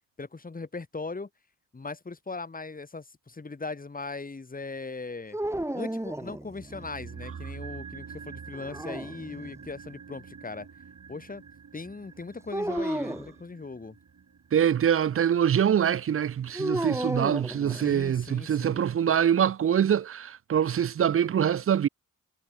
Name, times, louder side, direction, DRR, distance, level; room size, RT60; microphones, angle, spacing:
voice 1, 0.2-1.3 1.7-5.4 5.7-10.7 11.1-11.4 11.7-14.0 17.7-18.9, left 3 dB, 25° left, 1.4 m, -39 dB
sound 1, 5.3-6.9 8.5-9.7 12.5-13.3 16.5-18.2, right 1 dB, 10° right, 1.6 m, -33 dB
sound 2, 6.6-16.8 17.1-17.2, right 6 dB, 65° right, 6.6 m, -46 dB
voice 2, 14.5-21.9, right 9 dB, 45° right, 0.4 m, -24 dB
cardioid pair, 60°, 32 cm